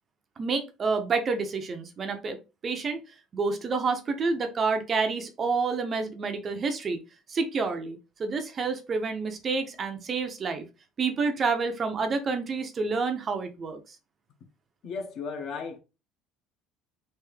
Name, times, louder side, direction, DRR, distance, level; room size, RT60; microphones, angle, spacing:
voice 1, 0.4-2.4 2.6-3.0 3.3-7.0 7.3-10.6 11.0-13.8, right 4 dB, 25° right, 0.5 m, -28 dB
voice 2, 14.8-15.8, left 5 dB, 50° left, 0.8 m, -35 dB
3.4 x 2.6 x 3.2 m
cardioid pair, 155°, 0 cm